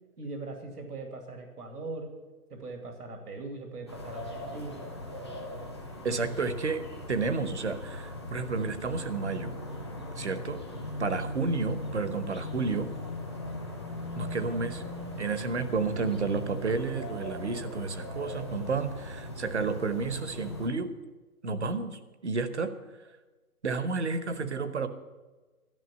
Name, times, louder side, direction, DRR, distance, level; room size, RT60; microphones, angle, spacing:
voice 1, 0.2-2.1 2.5-4.9 6.2-6.3, right 3 dB, 85° right, 3 dB, 2.7 m, -40 dB
sound 1, 3.9-20.7, left 1 dB, 20° left, 0.8 m, -39 dB
voice 2, 6.0-6.8 7.1-9.5 10.2-10.6 11.0-12.9 14.2-14.8 15.2-20.9 21.4-22.7 23.6-24.9, right 4 dB, 50° right, 10 dB, 1.0 m, -31 dB
13.0 x 5.9 x 9.5 m, 1.2 s
hypercardioid pair, 175°, 45 cm